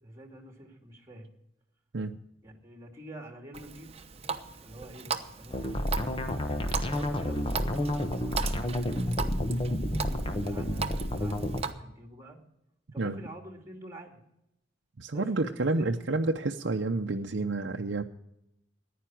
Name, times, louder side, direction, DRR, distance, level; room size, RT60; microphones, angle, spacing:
voice 1, 0.0-1.3 2.4-3.9 4.6-5.8 6.8-8.4 8.7-9.5 9.9-12.4 12.9-14.2 15.1-15.9, right 1 dB, 15° right, 3 dB, 2.4 m, -47 dB
Water tap faucet, 3.5-11.7, right 5 dB, 35° right, 1.0 m, -38 dB
sound 1, 5.5-11.6, left 1 dB, 30° left, 1.1 m, -30 dB
voice 2, 15.0-18.0, right 2 dB, 70° right, 2 dB, 0.7 m, -29 dB
15.0 x 10.0 x 6.0 m, 0.81 s
head